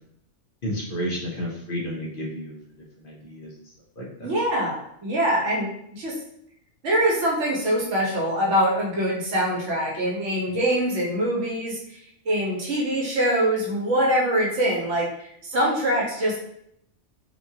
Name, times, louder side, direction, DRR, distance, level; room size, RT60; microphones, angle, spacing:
voice 1, 0.6-2.6 3.0-3.5 4.0-4.3, equal, 50° left, -4 dB, 0.8 m, -31 dB
voice 2, 4.2-6.1 6.8-11.8 12.3-15.1 15.4-16.4, right 1 dB, 75° right, -4 dB, 1.2 m, -23 dB
2.9 x 2.3 x 2.7 m, 0.73 s
omnidirectional pair, 1.2 m